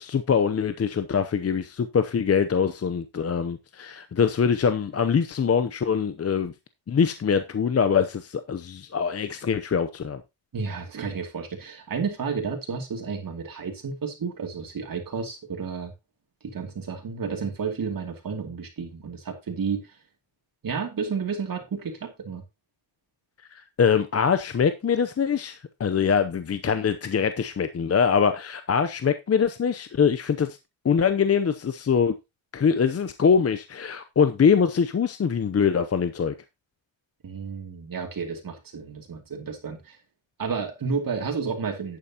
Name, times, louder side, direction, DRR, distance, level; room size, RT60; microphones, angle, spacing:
voice 1, 0.0-6.5 6.9-10.2 23.8-30.6 30.8-32.1 32.5-36.3, left 6 dB, 30° left, 0.7 m, -23 dB
voice 2, 10.5-15.9 16.4-20.0 20.6-22.4 37.2-40.0 40.4-42.0, right 5 dB, 45° right, 2.6 m, -31 dB
11.5 x 8.7 x 2.9 m
cardioid pair, 120°, 47 cm